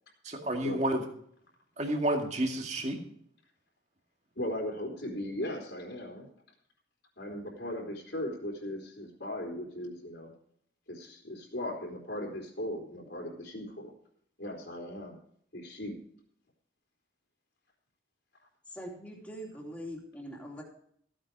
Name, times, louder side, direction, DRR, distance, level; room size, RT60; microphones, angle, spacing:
voice 1, 0.2-1.0 1.8-3.0, right 1 dB, 40° right, 3 dB, 2.1 m, -30 dB
voice 2, 4.4-6.3 7.2-10.3 10.9-13.9 14.4-15.2 15.5-16.0, left 1 dB, 70° left, -2 dB, 3.6 m, -38 dB
voice 3, 18.7-20.6, equal, 5° left, -1 dB, 2.8 m, -42 dB
15.0 x 8.9 x 4.8 m, 0.66 s
head